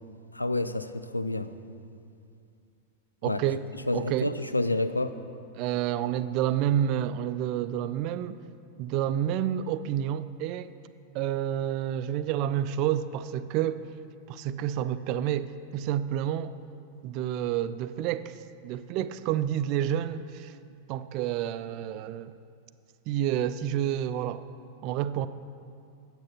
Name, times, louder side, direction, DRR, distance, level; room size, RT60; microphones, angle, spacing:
voice 1, 0.3-1.5 3.2-3.4 3.9-5.2, left 2 dB, 85° left, 11 dB, 0.4 m, -29 dB
voice 2, 3.2-3.6 3.9-4.3 5.6-8.4 8.8-10.7 11.1-13.9 14.3-16.6 17.0-18.4 18.6-20.6 20.9-22.3 23.1-24.5 24.8-25.3, right 11 dB, 40° right, 13 dB, 0.3 m, -29 dB
8.7 x 8.0 x 5.8 m, 2.5 s
figure-of-eight pair, 90°, 0 cm